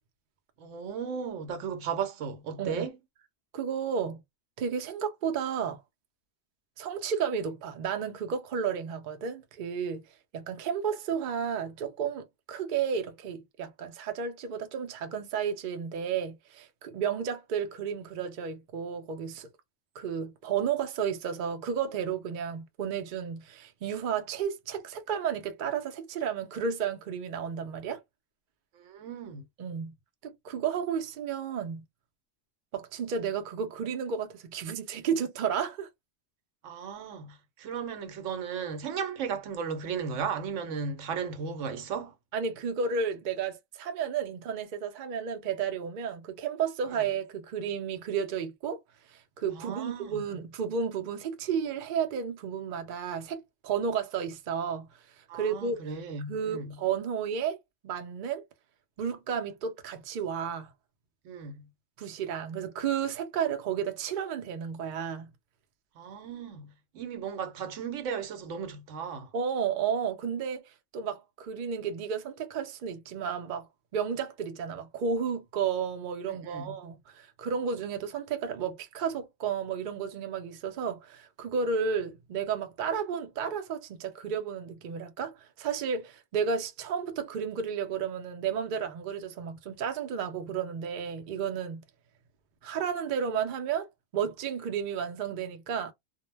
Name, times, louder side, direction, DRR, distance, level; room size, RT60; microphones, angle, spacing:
voice 1, 0.6-3.0 28.7-29.5 36.6-42.1 49.5-50.2 55.3-56.8 61.2-61.7 66.0-69.3 76.3-76.7, right 6 dB, 75° right, 1.0 m, -36 dB
voice 2, 3.5-4.2 4.6-5.8 6.8-10.0 10.3-19.5 20.0-28.0 29.6-29.9 30.2-31.8 32.7-35.9 42.3-48.8 49.1-54.9 55.3-55.8 56.3-57.6 57.8-58.5 59.0-60.7 62.0-65.3 69.3-70.6 70.9-91.8 92.6-93.9 94.1-95.9, right 7 dB, 55° right, 0.5 m, -32 dB
2.2 x 2.0 x 3.1 m
omnidirectional pair, 1.3 m